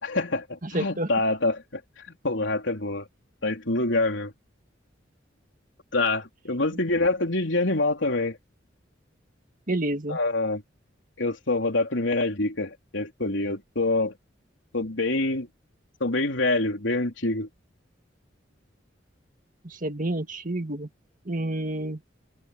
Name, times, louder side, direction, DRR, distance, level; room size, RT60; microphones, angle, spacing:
voice 1, 0.0-1.8 2.1-3.1 3.4-4.3 5.9-8.4 10.1-10.6 11.2-14.1 14.7-15.5 16.0-17.5, left 2 dB, 85° left, 3.6 m, -26 dB
voice 2, 0.6-1.1 9.7-10.2 19.6-20.9 21.3-22.0, right 1 dB, 45° right, 1.8 m, -29 dB
open air
head